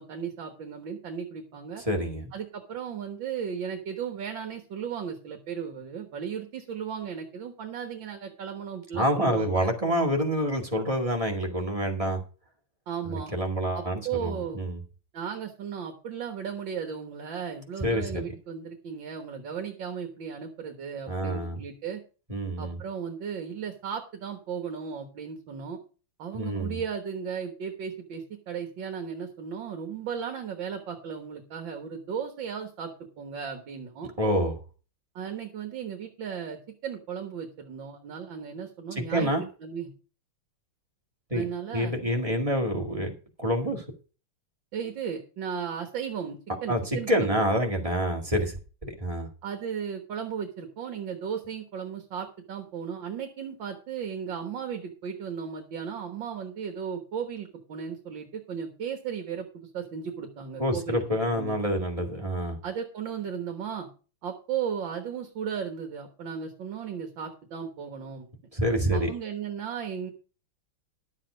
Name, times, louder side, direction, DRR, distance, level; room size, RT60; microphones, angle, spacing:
voice 1, 0.0-1.8 2.3-9.7 12.9-13.3 13.7-14.6 15.1-22.0 22.6-25.8 26.2-34.1 35.2-39.3 39.6-39.9 41.3-42.0 44.7-47.4 49.4-61.0 61.3-61.6 62.6-63.9 64.2-68.3 68.9-70.1, right 7 dB, 60° right, 5 dB, 2.0 m, -35 dB
voice 2, 1.9-2.3 8.9-12.2 13.1-14.8 17.8-18.2 21.1-21.6 22.3-22.8 26.3-26.8 34.2-34.6 39.1-39.4 41.3-41.4 41.7-43.1 43.4-43.8 46.7-49.3 60.6-62.6 68.5-69.1, equal, 15° right, 1 dB, 1.9 m, -27 dB
12.0 x 7.5 x 5.1 m, 0.36 s
omnidirectional pair, 2.4 m